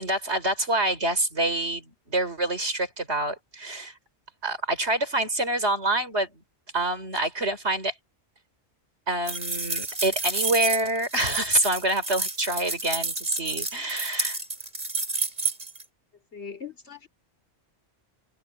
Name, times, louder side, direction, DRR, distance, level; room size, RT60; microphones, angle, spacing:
voice 1, 0.0-3.9 4.4-6.3 6.7-7.9 9.1-14.4, right 1 dB, 65° right, 4.9 m, -26 dB
sound 1, 9.3-15.8, right 3 dB, 40° right, 3.4 m, -30 dB
voice 2, 16.3-17.1, left 6 dB, 70° left, 3.3 m, -40 dB
omnidirectional pair, 1.2 m